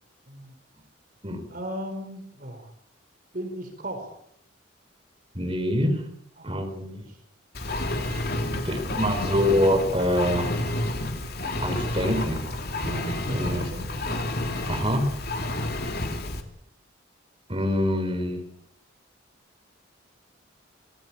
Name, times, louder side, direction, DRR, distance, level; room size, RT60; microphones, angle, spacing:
voice 1, 1.5-2.7 3.3-4.2 6.4-6.7 7.1-7.2 8.5-8.9 13.3-14.2 15.8-16.3, equal, 45° right, 6 dB, 4.4 m, -38 dB
voice 2, 5.3-6.0 6.4-7.0 8.6-10.5 11.6-12.5 12.8-13.7 14.7-15.1 17.5-18.4, equal, 30° right, 4 dB, 4.8 m, -25 dB
Engine, 7.5-16.4, left 1 dB, 50° left, 3.1 m, -30 dB
27.5 x 18.5 x 8.8 m, 0.73 s
head